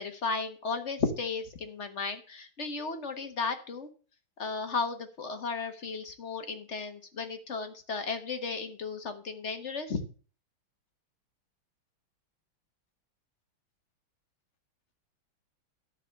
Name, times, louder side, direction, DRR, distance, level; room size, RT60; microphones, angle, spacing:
voice 1, 0.0-3.9 4.4-10.0, left 4 dB, 40° left, 7 dB, 1.3 m, -34 dB
13.0 x 4.7 x 7.4 m, 0.39 s
omnidirectional pair, 2.4 m